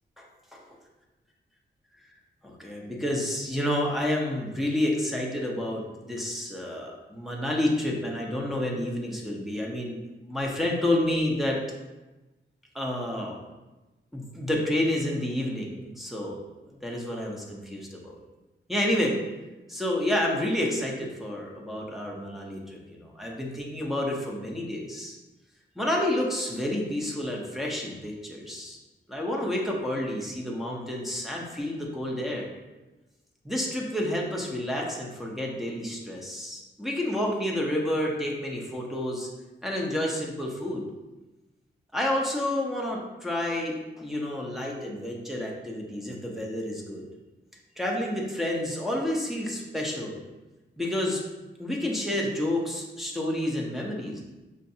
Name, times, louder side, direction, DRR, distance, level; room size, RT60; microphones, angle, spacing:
voice 1, 2.4-11.6 12.7-13.4 14.1-16.4 16.7-18.2 18.7-19.2 19.7-25.2 25.8-28.8 29.1-32.5 33.4-39.3 39.6-40.9 41.9-47.1 47.8-50.2 50.8-51.2 51.6-54.2, left 1 dB, ahead, -3 dB, 0.6 m, -29 dB
5.5 x 2.5 x 2.6 m, 1.1 s
wide cardioid pair, 135°, 19 cm